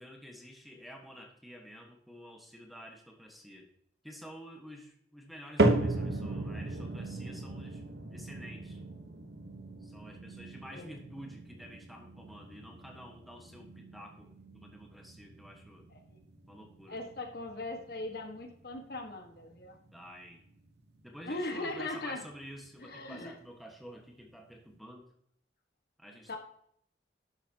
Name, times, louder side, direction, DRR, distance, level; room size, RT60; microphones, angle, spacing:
voice 1, 0.0-3.7 4.0-8.8 9.8-15.9 16.5-17.0 19.9-20.4 21.0-25.1 26.0-26.4, equal, ahead, 2 dB, 1.3 m, -50 dB
sound 1, 5.6-21.9 22.2-22.7 23.3-23.4 24.3-24.4, right 2 dB, 70° right, 1.0 m, -36 dB
voice 2, 16.9-19.8 21.2-22.2 22.8-23.3 26.3-26.4, left 2 dB, 60° left, 4 dB, 1.4 m, -39 dB
11.5 x 8.3 x 2.8 m, 0.68 s
head